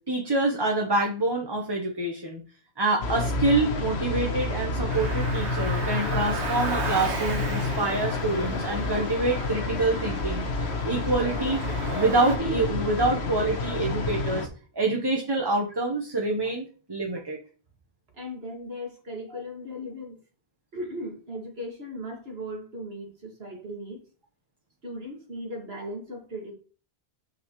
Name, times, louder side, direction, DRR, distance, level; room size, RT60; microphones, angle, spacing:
voice 1, 0.0-2.4 2.8-10.4 10.8-11.6 11.9-14.5 14.7-17.4 19.3-19.4, right 2 dB, 25° right, 1 dB, 1.0 m, -26 dB
sound 1, 3.0-14.5, left 3 dB, 70° left, 1.3 m, -29 dB
Car, 4.9-12.4, right 3 dB, 80° right, 1.6 m, -36 dB
voice 2, 18.1-20.2 20.7-24.0 24.8-26.5, equal, 65° right, 1 dB, 2.4 m, -37 dB
6.8 x 6.5 x 3.1 m, 0.37 s
omnidirectional pair, 1.1 m